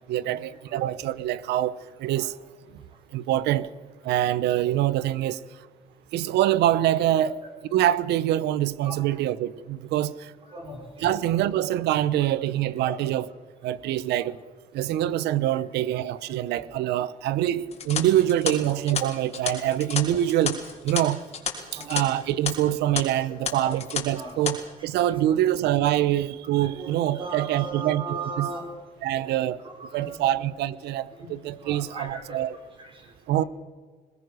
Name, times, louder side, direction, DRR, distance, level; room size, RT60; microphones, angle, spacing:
voice 1, 0.1-2.3 2.7-2.8 3.1-3.7 4.0-5.4 6.1-7.3 7.7-10.3 11.0-13.3 13.6-14.4 14.7-21.2 21.7-28.5 29.0-29.6 29.9-32.6 33.3-33.4, right 12 dB, 80° right, 0.9 m, -25 dB
voice 2, 10.5-11.1 12.8-13.0 19.5-19.6 21.7-22.1 23.6-23.8 24.1-24.4 26.8-28.7 29.2-29.3 29.6-30.3 31.2-31.3 31.6-32.4 32.8-33.1, right 3 dB, 30° right, 5.3 m, -38 dB
sound 1, 17.7-22.0 22.3-22.5 23.0-23.1 23.5-24.0 24.3-24.5, left 7 dB, 40° left, 3.8 m, -31 dB
21.0 x 20.5 x 6.5 m
cardioid pair, 110°, 17 cm